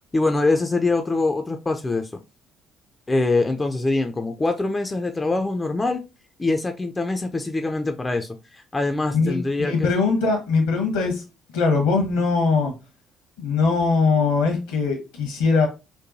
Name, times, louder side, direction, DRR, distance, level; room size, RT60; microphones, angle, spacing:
voice 1, 0.1-2.1 3.1-6.0 6.4-9.9, left 3 dB, 20° left, 0.4 m, -24 dB
voice 2, 9.1-11.2 11.5-12.7 13.4-15.7, left 4 dB, 70° left, 1.0 m, -21 dB
4.6 x 2.2 x 2.6 m
figure-of-eight pair, 45°, 0 cm